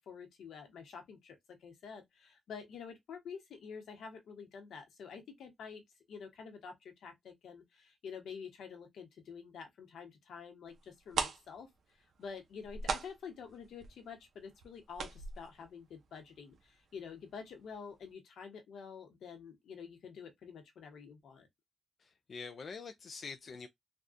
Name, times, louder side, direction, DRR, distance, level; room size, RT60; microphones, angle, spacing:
voice 1, 0.1-5.8 6.1-21.5, left 6 dB, 75° left, 1.0 m, -48 dB
sound 1, 10.8-10.9 11.1-16.7 16.9-17.0 17.5-17.7 18.0-18.1, right 5 dB, 60° right, 0.7 m, -39 dB
voice 2, 22.0-23.7, left 5 dB, 40° left, 0.3 m, -45 dB
3.4 x 2.3 x 2.5 m
wide cardioid pair, 160°, 0 cm